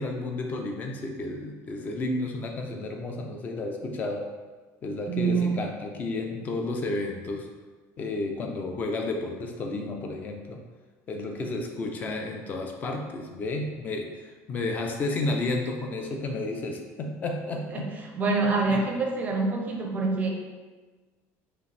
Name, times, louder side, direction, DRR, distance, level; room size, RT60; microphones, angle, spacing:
voice 1, 0.0-4.3 4.8-7.5 8.0-10.6 11.1-14.1 14.5-17.9 18.7-18.8, left 2 dB, 25° left, 2 dB, 0.4 m, -31 dB
voice 2, 5.1-5.6 17.7-20.3, right 3 dB, 25° right, 1 dB, 0.5 m, -26 dB
5.1 x 2.5 x 3.3 m, 1.3 s
cardioid pair, 175°, 7 cm